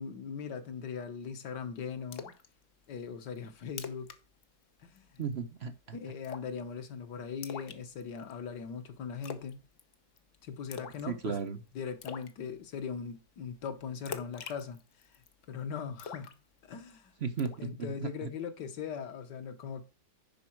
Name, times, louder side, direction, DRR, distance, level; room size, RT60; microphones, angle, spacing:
voice 1, 0.0-2.3 2.9-4.1 4.8-5.2 5.9-9.6 10.4-11.4 11.7-14.8 15.5-16.3 16.6-17.1 17.6-19.8, left 6 dB, 90° left, 1.8 m, -40 dB
Splash splatter, 2.1-2.5 2.8-2.9 3.4-3.5 3.7-4.2 4.4-4.6 5.0-5.3 6.2-6.6 7.4-8.3 9.2-9.5 9.8-10.2 10.7-11.1 11.4-11.5 12.0-12.3 14.1-15.3 16.0-16.9 17.4-17.7, left 6 dB, 55° left, 1.2 m, -43 dB
voice 2, 5.2-6.0 11.1-11.6 17.2-17.7 18.0-18.3, right 6 dB, 50° right, 0.9 m, -35 dB
10.5 x 4.7 x 4.5 m
omnidirectional pair, 1.8 m